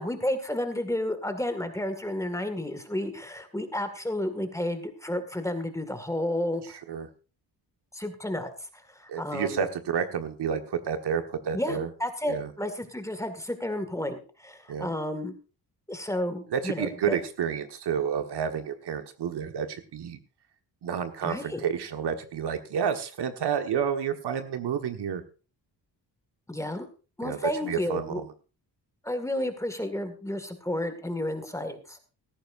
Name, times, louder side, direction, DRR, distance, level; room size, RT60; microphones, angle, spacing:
voice 1, 0.0-6.6 7.9-9.6 11.5-15.3 15.9-17.2 21.2-21.7 26.5-26.9 27.2-28.2 29.0-32.0, left 1 dB, 5° left, 8 dB, 2.0 m, -31 dB
voice 2, 9.1-11.9 12.3-12.5 14.7-14.9 16.5-20.2 20.8-25.2 27.2-28.1, right 7 dB, 70° right, 7 dB, 1.5 m, -30 dB
16.5 x 14.0 x 2.6 m, 0.34 s
cardioid pair, 120°, 42 cm